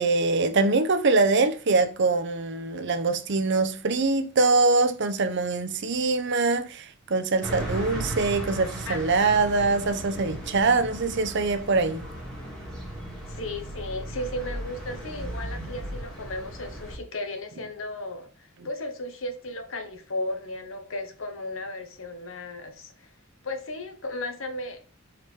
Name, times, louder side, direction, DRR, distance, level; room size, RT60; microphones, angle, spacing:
voice 1, 0.0-12.0, right 3 dB, 60° right, 0.7 m, -23 dB
sound 1, 7.4-17.0, right 1 dB, 5° left, 2.3 m, -36 dB
voice 2, 8.9-9.4 13.3-23.1 23.4-24.8, left 2 dB, 75° left, 1.2 m, -35 dB
4.9 x 4.7 x 4.9 m
head